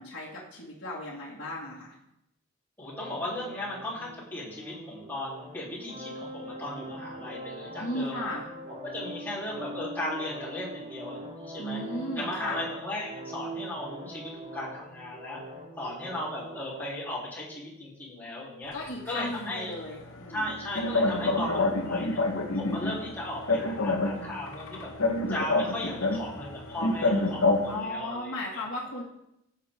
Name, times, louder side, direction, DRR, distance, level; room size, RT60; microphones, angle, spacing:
voice 1, 0.0-2.0 7.8-8.4 11.6-12.6 18.7-20.4 27.7-29.0, left 1 dB, 55° left, -7 dB, 2.1 m, -36 dB
voice 2, 2.8-8.3 8.8-11.8 12.1-15.4 15.8-18.7 19.1-19.7 20.3-22.2 22.5-24.9 25.3-28.6, left 1 dB, 10° left, -8 dB, 3.4 m, -36 dB
sound 1, 2.8-16.8, right 1 dB, 25° right, 1.5 m, -42 dB
sound 2, 20.1-27.8, left 2 dB, 70° left, 1.3 m, -28 dB
14.5 x 7.4 x 3.7 m, 0.83 s
head